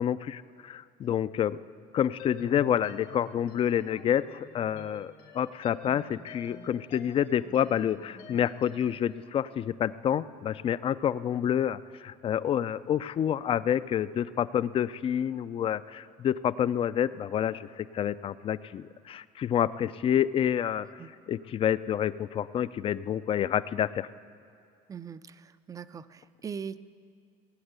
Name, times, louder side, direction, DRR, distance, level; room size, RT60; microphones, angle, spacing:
voice 1, 0.0-1.6 1.9-20.9 21.3-24.1, left 9 dB, 35° left, 16 dB, 0.4 m, -28 dB
sound 1, 2.2-9.0, left 6 dB, 75° left, 2.4 m, -48 dB
voice 2, 24.9-26.8, right 6 dB, 20° right, 14 dB, 0.4 m, -41 dB
18.0 x 8.8 x 8.1 m, 2.4 s
cardioid pair, 115°, 15 cm